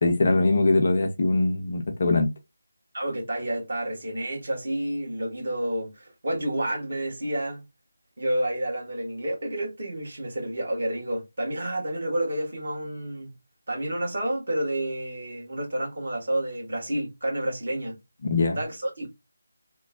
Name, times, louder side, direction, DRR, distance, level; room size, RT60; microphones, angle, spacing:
voice 1, 0.0-2.3 18.2-18.6, left 2 dB, 40° left, 0.6 m, -22 dB
voice 2, 2.9-7.6 8.2-13.3 13.7-18.0 18.6-19.1, right 1 dB, 50° right, 1.5 m, -30 dB
3.0 x 2.1 x 2.4 m
figure-of-eight pair, 160°, 0 cm